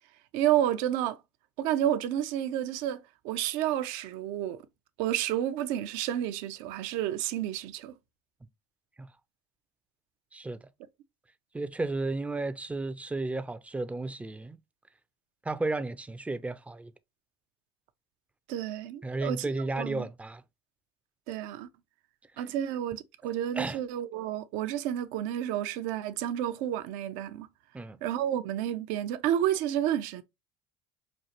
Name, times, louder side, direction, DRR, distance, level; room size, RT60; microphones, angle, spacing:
voice 1, 0.3-1.2 1.6-4.6 5.0-7.9 18.5-19.5 19.7-20.1 21.3-21.7 22.4-27.5 28.0-30.2, right 11 dB, 65° right, 0.6 m, -30 dB
voice 2, 11.5-14.6 15.5-16.9 19.0-20.4 23.5-23.8 27.7-28.0, right 2 dB, 10° right, 0.4 m, -33 dB
5.3 x 2.4 x 2.8 m
hypercardioid pair, 80°, 14 cm